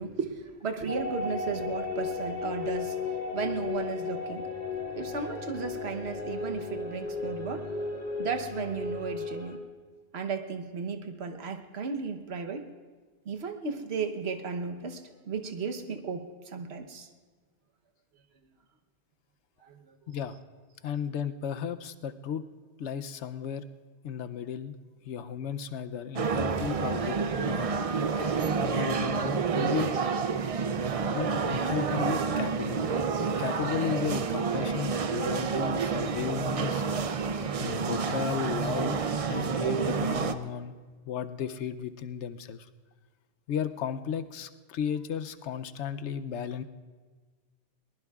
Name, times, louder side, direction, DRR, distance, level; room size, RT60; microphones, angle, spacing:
voice 1, 0.0-3.0 3.3-4.5 5.0-9.6 10.1-12.7 13.3-17.1 19.6-20.0, right 5 dB, 70° right, 6 dB, 1.2 m, -35 dB
sound 1, 0.9-9.6, left 4 dB, 40° left, 1.4 m, -35 dB
voice 2, 20.1-20.4 20.8-22.4 22.8-23.7 24.0-24.7 25.0-27.8 28.6-30.0 31.1-32.9 33.4-36.9 37.6-39.0 39.3-40.7 41.1-42.7 43.5-46.6, left 8 dB, 85° left, 10 dB, 0.9 m, -34 dB
sound 2, 26.2-40.3, right 5 dB, 45° right, 0.5 m, -29 dB
22.5 x 19.5 x 2.4 m, 1.4 s
omnidirectional pair, 1.2 m